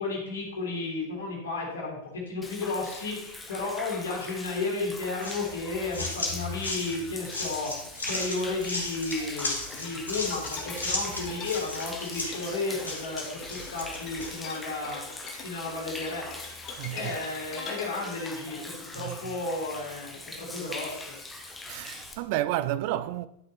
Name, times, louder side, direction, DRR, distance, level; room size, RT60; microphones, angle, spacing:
voice 1, 0.0-15.0 15.4-16.3 16.9-21.2, left 3 dB, 60° left, 3.6 m, -33 dB
Human voice / Rain / Stream, 2.4-22.1, left 2 dB, 10° left, 1.4 m, -42 dB
sound 1, 5.2-14.4, left 2 dB, 80° left, 2.9 m, -35 dB
sound 2, 9.4-19.9, left 4 dB, 30° left, 2.1 m, -44 dB
voice 2, 16.8-17.2 18.9-19.4 21.7-23.3, right 14 dB, 45° right, 0.5 m, -31 dB
11.0 x 6.6 x 4.6 m
figure-of-eight pair, 90°, 0 cm